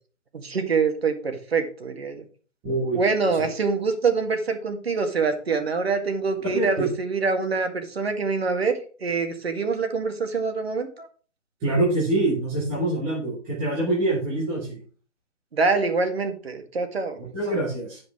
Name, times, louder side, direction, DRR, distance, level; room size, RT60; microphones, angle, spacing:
voice 1, 0.3-2.2 2.9-11.1 15.5-17.2, right 4 dB, 55° right, 6 dB, 1.8 m, -25 dB
voice 2, 2.6-3.5 6.5-6.9 11.6-14.8 17.3-18.0, right 2 dB, 5° right, -9 dB, 0.7 m, -25 dB
9.4 x 5.3 x 4.6 m, 0.39 s
figure-of-eight pair, 155°, 37 cm